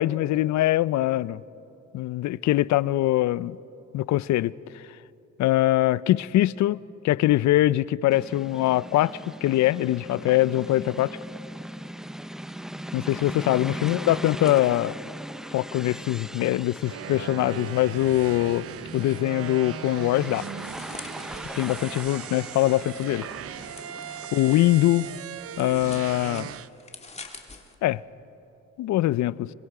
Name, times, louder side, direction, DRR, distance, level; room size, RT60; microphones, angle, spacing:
voice 1, 0.0-1.4 1.9-3.6 3.9-4.5 5.4-11.2 12.9-14.9 15.5-18.6 18.9-20.4 21.6-23.2 24.3-25.1 25.6-26.5 27.8-28.0 28.8-29.5, left 15 dB, 70° left, 0.5 m, -23 dB
sound 1, 8.1-24.6, equal, ahead, 0.5 m, -39 dB
sound 2, 16.8-26.7, right 10 dB, 50° right, 0.6 m, -38 dB
sound 3, 20.7-22.3 23.0-27.7, left 3 dB, 20° left, 2.0 m, -47 dB
26.0 x 23.0 x 4.9 m
cardioid pair, 90°, 30 cm